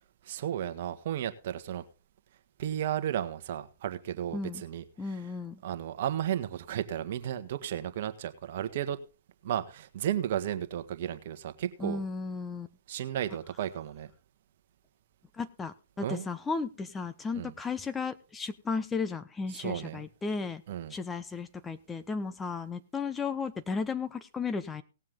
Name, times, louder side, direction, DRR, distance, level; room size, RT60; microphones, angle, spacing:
voice 1, 0.2-1.8 2.6-4.8 5.6-9.0 9.4-12.0 12.9-14.1 16.0-16.3 17.3-17.5 19.5-20.0 20.7-20.9, right 10 dB, 55° right, 10 dB, 1.5 m, -33 dB
voice 2, 5.0-5.6 11.8-12.7 15.3-20.6 20.9-24.8, left 4 dB, 15° left, 10 dB, 1.0 m, -34 dB
18.5 x 7.5 x 3.8 m, 0.33 s
hypercardioid pair, 125°, 0 cm